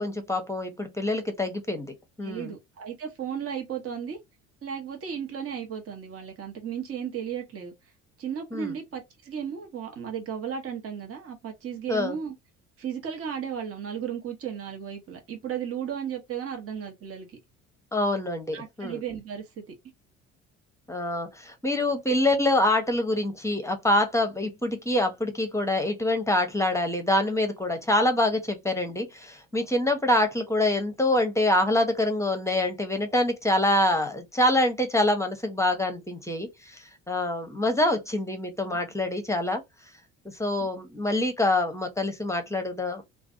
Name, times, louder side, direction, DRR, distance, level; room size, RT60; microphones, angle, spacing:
voice 1, 0.0-2.5 8.5-8.8 11.9-12.2 17.9-19.0 20.9-39.6 40.4-43.0, left 1 dB, 10° left, 0.8 m, -25 dB
voice 2, 2.2-4.2 4.6-7.7 8.2-12.3 12.8-17.3 18.5-19.6 40.6-40.7, right 8 dB, 35° right, 1.0 m, -35 dB
2.5 x 2.2 x 2.5 m
hypercardioid pair, 60°, 38 cm